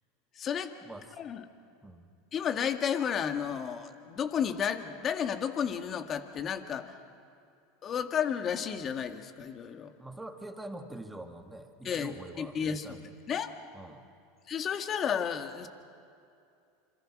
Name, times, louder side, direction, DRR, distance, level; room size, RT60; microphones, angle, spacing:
voice 1, 0.4-0.7 1.2-1.5 2.3-6.9 7.8-9.9 11.8-13.0 13.3-13.5 14.5-15.7, left 8 dB, 35° left, 6 dB, 2.0 m, -32 dB
voice 2, 10.0-13.1 13.7-14.0, right 1 dB, 5° right, 4 dB, 2.5 m, -44 dB
27.0 x 26.5 x 6.4 m, 2.5 s
hypercardioid pair, 90°, 0 cm